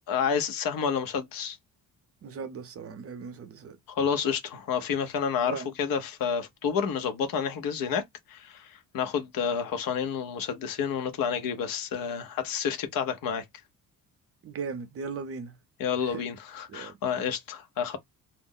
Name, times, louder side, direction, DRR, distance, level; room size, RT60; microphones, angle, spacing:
voice 1, 0.1-1.6 3.9-13.4 15.8-18.0, left 7 dB, 65° left, 0.8 m, -30 dB
voice 2, 2.2-3.8 5.4-5.7 14.4-15.5 16.0-16.2 16.7-16.9, right 5 dB, 40° right, 0.6 m, -38 dB
2.4 x 2.0 x 3.7 m
cardioid pair, 165°, 37 cm